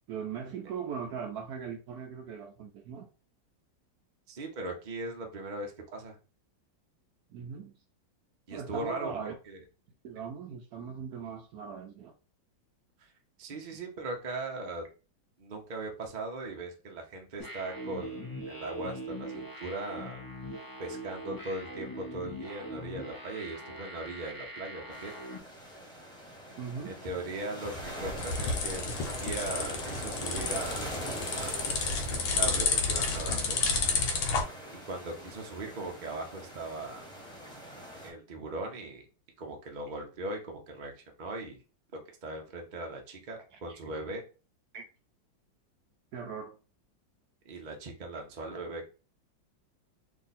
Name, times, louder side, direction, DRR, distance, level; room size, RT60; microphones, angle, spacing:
voice 1, 0.1-3.1 7.3-7.7 8.5-9.3 10.0-12.1 26.6-27.0 43.5-43.8 44.7-44.8 46.1-46.6, right 6 dB, 70° right, 0.9 m, -39 dB
voice 2, 4.3-6.2 8.5-9.6 13.4-14.8 15.4-20.2 20.8-25.1 26.8-31.0 31.3-33.6 34.9-37.1 38.0-39.0 39.4-41.6 42.2-44.2 47.4-48.9, right 2 dB, 50° right, 0.5 m, -39 dB
Electronic wah-wah drone, 17.4-25.4, equal, 25° left, 0.4 m, -42 dB
sound 1, 24.9-38.1, equal, 5° left, 1.0 m, -42 dB
sound 2, 27.7-34.4, left 4 dB, 85° left, 1.6 m, -31 dB
3.5 x 2.7 x 4.1 m
omnidirectional pair, 2.1 m